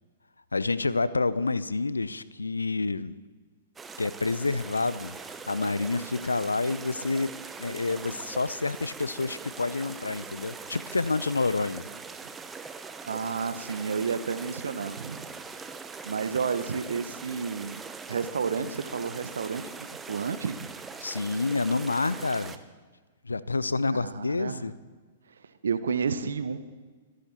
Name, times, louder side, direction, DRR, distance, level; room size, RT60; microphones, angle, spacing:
voice 1, 0.5-3.2 4.0-5.2 5.5-11.9 21.0-22.6 23.2-24.7, left 3 dB, 80° left, 17 dB, 0.6 m, -28 dB
sound 1, 3.8-22.6, right 4 dB, 15° right, 1.0 m, -42 dB
voice 2, 13.0-15.2 16.0-17.8 18.1-20.7 23.9-24.6 25.6-26.6, right 5 dB, 70° right, 12 dB, 1.1 m, -31 dB
25.0 x 11.5 x 4.4 m, 1.4 s
figure-of-eight pair, 105°, 0 cm